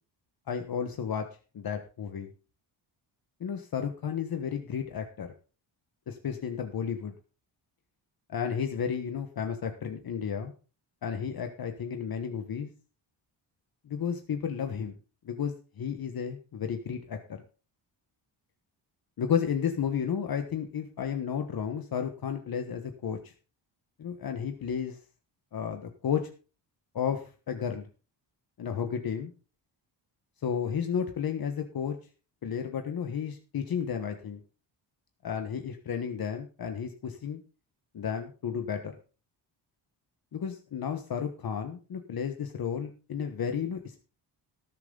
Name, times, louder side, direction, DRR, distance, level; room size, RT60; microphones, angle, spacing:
voice 1, 0.5-1.3 1.5-2.3 3.4-5.3 6.1-7.1 8.3-10.5 11.0-12.7 13.8-15.0 15.2-17.4 19.2-23.3 24.0-25.0 25.5-26.2 26.9-27.9 28.6-29.3 30.4-32.0 32.4-34.4 35.2-37.4 37.9-38.9 40.3-44.0, left 7 dB, 50° left, 5 dB, 1.4 m, -32 dB
18.5 x 7.5 x 3.9 m, 0.36 s
cardioid pair, 130°, 45 cm